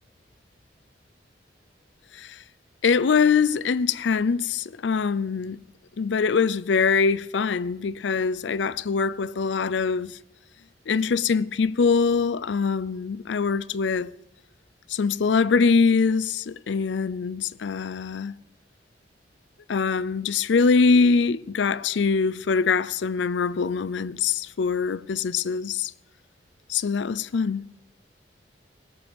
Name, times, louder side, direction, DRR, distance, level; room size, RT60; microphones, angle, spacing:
voice 1, 2.8-5.6 6.0-10.2 10.9-14.1 14.9-18.3 19.7-25.9 26.7-27.7, left 5 dB, 80° left, 0.5 m, -23 dB
19.0 x 6.9 x 7.0 m
head